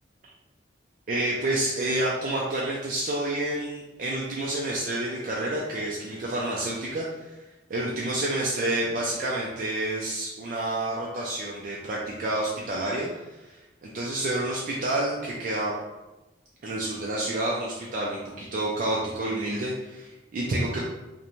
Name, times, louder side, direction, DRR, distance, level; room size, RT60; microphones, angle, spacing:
voice 1, 1.1-7.4 7.7-15.7 16.6-20.8, right 1 dB, 45° right, -4 dB, 0.3 m, -29 dB
2.5 x 2.1 x 2.9 m, 1.1 s
head